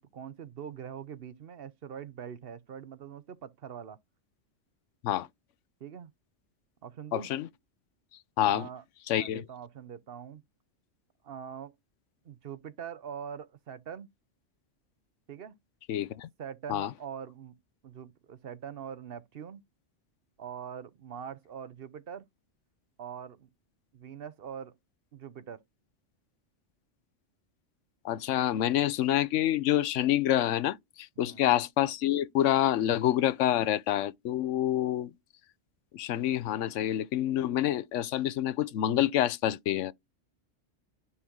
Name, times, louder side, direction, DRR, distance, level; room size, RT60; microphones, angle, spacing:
voice 1, 0.0-4.0 5.8-6.1 6.8-7.3 8.4-8.8 9.1-10.4 11.2-11.7 12.2-14.1 15.3-15.6 16.4-17.6 17.8-19.6 20.4-22.3 23.0-23.5 23.9-24.7 25.1-25.6 31.2-31.5, right 8 dB, 55° right, 1.0 m, -43 dB
voice 2, 7.1-7.5 8.4-8.7 9.1-9.4 15.9-16.3 16.7-16.9 28.0-35.1 35.9-39.9, left 12 dB, 90° left, 1.0 m, -27 dB
9.9 x 3.8 x 3.2 m
omnidirectional pair, 1.2 m